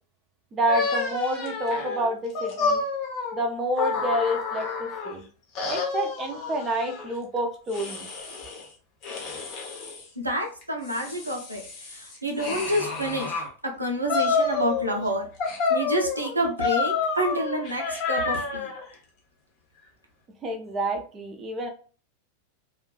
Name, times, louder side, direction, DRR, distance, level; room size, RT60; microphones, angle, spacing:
voice 1, 0.5-2.8 3.3-5.3 5.7-8.1 20.4-21.7, right 1 dB, 25° right, 4 dB, 0.4 m, -28 dB
sound 1, 0.7-5.1 5.6-7.1 7.7-8.6 9.0-10.0 10.6-13.5 14.1-15.1 15.4-18.8, left 4 dB, 40° left, 0.7 m, -29 dB
voice 2, 10.2-13.4 13.8-15.2 15.7-18.7, equal, 85° right, 2 dB, 0.5 m, -28 dB
2.4 x 2.2 x 2.3 m, 0.38 s
figure-of-eight pair, 90°, 0 cm